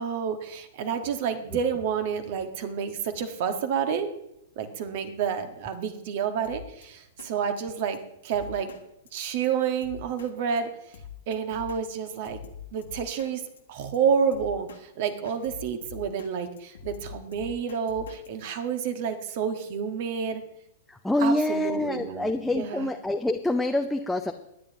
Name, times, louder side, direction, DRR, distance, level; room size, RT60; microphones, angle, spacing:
voice 1, 0.0-4.1 4.5-8.7 9.1-11.0 11.3-12.4 12.7-13.4 13.7-20.4 21.2-22.9, right 7 dB, 50° right, 8 dB, 1.6 m, -29 dB
Drum kit, 6.4-6.8 7.2-7.3 7.6-7.7 7.9-8.0 8.3-8.8 9.1-9.2 9.4-9.5 9.8-10.3 10.6-10.7 10.9-11.8 12.1-13.3 13.6-13.7 13.9-14.0 14.3-14.8 15.1-16.3 16.6-18.3, left 8 dB, 65° left, 1.5 m, -44 dB
voice 2, 20.9-24.3, left 1 dB, 5° left, 4 dB, 0.7 m, -26 dB
22.0 x 10.5 x 3.0 m, 0.84 s
figure-of-eight pair, 105°, 0 cm